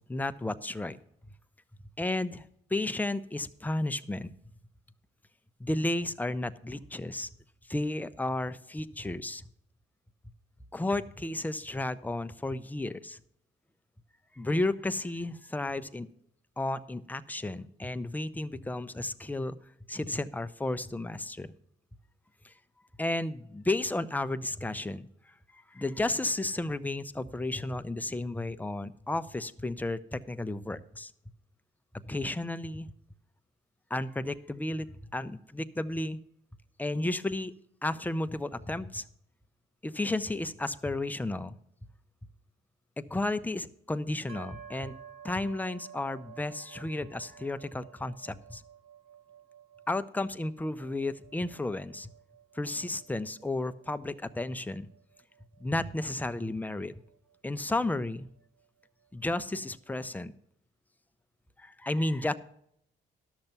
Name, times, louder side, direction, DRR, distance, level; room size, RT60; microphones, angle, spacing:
voice 1, 0.1-1.0 2.0-4.3 5.6-7.3 7.7-9.4 10.7-13.2 14.4-16.1 16.6-19.6 19.9-21.5 22.4-22.5 23.0-25.1 25.5-31.1 32.1-32.9 33.9-34.9 35.1-36.2 36.8-37.5 37.8-39.0 39.8-41.6 43.0-45.0 45.2-48.6 49.9-52.1 52.5-54.9 55.6-56.9 57.4-58.3 59.1-60.3 61.6-62.3, left 2 dB, 10° left, 11 dB, 0.6 m, -33 dB
sound 1, 44.3-58.0, right 8 dB, 85° right, 1.4 m, -53 dB
12.0 x 6.6 x 5.8 m, 0.71 s
cardioid pair, 90°, 20 cm